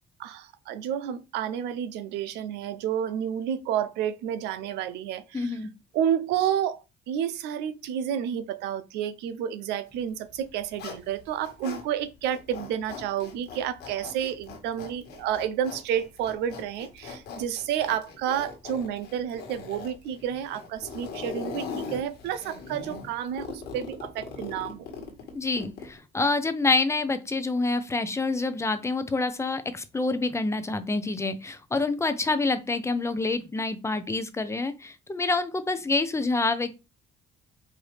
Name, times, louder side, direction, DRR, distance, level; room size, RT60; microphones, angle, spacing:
voice 1, 0.2-5.6 5.9-6.8 7.1-24.9, right 9 dB, 90° right, 0.5 m, -30 dB
voice 2, 5.3-5.7 25.3-36.7, left 3 dB, 15° left, 0.5 m, -27 dB
Zipper (clothing), 10.2-11.8 12.2-26.0, left 5 dB, 75° left, 1.5 m, -40 dB
4.8 x 2.7 x 3.2 m
cardioid pair, 110°, 17 cm